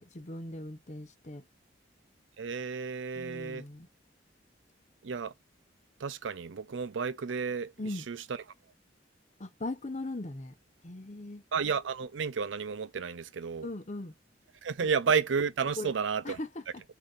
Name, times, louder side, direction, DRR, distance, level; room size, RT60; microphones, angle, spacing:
voice 1, 0.0-1.4 3.1-3.9 7.8-8.1 9.4-10.5 10.8-11.4 13.6-14.1 14.8-14.9 15.8-15.9 16.2-16.8, left 2 dB, 40° left, 0.8 m, -39 dB
voice 2, 2.4-3.6 5.0-5.3 6.0-7.7 8.1-8.2 11.5-13.7 14.6-16.4, right 6 dB, 85° right, 0.5 m, -31 dB
6.4 x 2.8 x 2.5 m
head